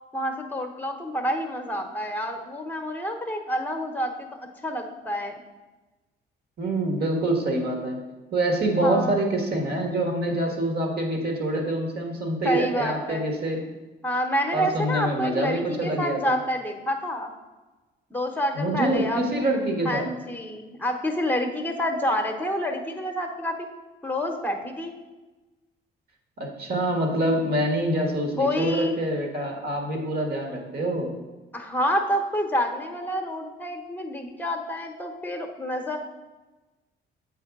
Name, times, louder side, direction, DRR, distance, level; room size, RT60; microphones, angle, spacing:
voice 1, 0.1-4.3 4.6-5.4 8.8-9.2 12.4-13.3 14.0-17.3 18.1-19.2 19.8-23.7 24.0-24.9 28.4-28.9 31.5-36.0, equal, 10° left, 4 dB, 0.9 m, -28 dB
voice 2, 6.6-8.0 8.3-13.6 14.5-16.4 18.5-20.1 26.4-31.1, right 1 dB, 50° right, 2 dB, 1.5 m, -26 dB
7.8 x 4.7 x 3.6 m, 1.2 s
cardioid pair, 90°, 20 cm